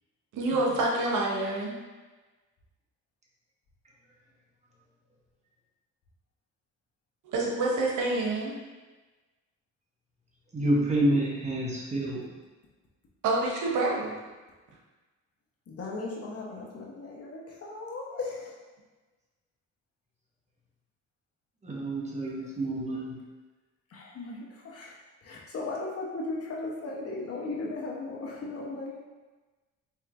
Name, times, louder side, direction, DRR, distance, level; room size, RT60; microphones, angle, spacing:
voice 1, 0.3-1.8 7.2-8.6 13.2-14.1, right 2 dB, 80° right, -2 dB, 0.9 m, -27 dB
voice 2, 10.5-12.2 21.6-23.2, right 1 dB, 25° right, -4 dB, 1.0 m, -28 dB
voice 3, 15.7-18.5 23.9-24.9 25.2-29.0, left 3 dB, 50° left, -3 dB, 0.9 m, -37 dB
4.5 x 2.9 x 2.5 m, 1.2 s
cardioid pair, 90°, 30 cm